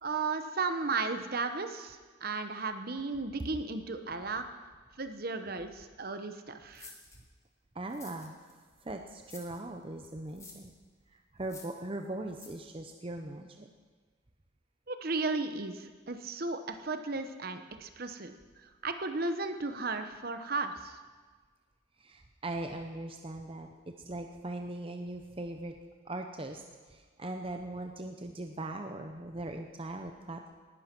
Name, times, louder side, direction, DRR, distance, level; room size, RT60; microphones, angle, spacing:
voice 1, 0.0-4.4 5.0-6.9 14.9-18.3 18.8-21.0, right 3 dB, 45° right, 8 dB, 1.0 m, -35 dB
sound 1, 6.7-7.2 7.9-8.5 9.3-9.6 10.3-10.7 11.4-11.8 12.3-12.5, left 4 dB, 15° left, 1.7 m, -50 dB
voice 2, 7.7-8.3 8.8-10.7 11.1-13.7 22.0-25.7 26.0-26.6 26.9-30.6, right 2 dB, 25° right, 5 dB, 0.7 m, -40 dB
19.0 x 11.5 x 6.1 m, 1.4 s
head